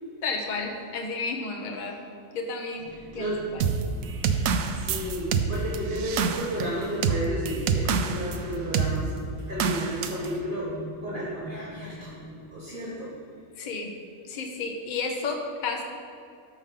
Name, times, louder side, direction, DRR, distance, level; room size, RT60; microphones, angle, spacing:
voice 1, 0.0-2.0 2.3-3.7 13.6-13.9 14.3-15.8, left 3 dB, 40° left, 1 dB, 0.9 m, -32 dB
sound 1, 2.8-12.5, equal, 10° left, 1.5 m, -43 dB
voice 2, 2.9-3.4 4.7-9.1 9.5-10.7 11.0-12.1 12.5-13.1, equal, 40° right, -7 dB, 1.5 m, -32 dB
sound 2, 3.6-8.4 8.7-9.0 9.6-10.3, right 6 dB, 80° right, 1.0 m, -26 dB
13.5 x 5.4 x 3.7 m, 2.5 s
omnidirectional pair, 1.5 m